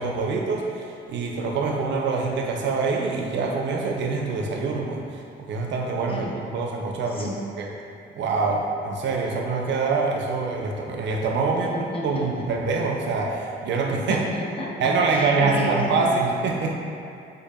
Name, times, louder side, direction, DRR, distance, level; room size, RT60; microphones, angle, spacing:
voice 1, 0.0-6.2 6.5-7.3 7.6-7.7 8.2-11.7 12.0-14.2 14.8-16.7, right 4 dB, 65° right, 1 dB, 0.5 m, -25 dB
voice 2, 6.0-6.3 7.1-7.3 11.5-12.2 14.0-16.1, equal, 30° left, -3 dB, 0.7 m, -32 dB
4.5 x 2.6 x 2.4 m, 2.6 s
cardioid pair, 90°, 20 cm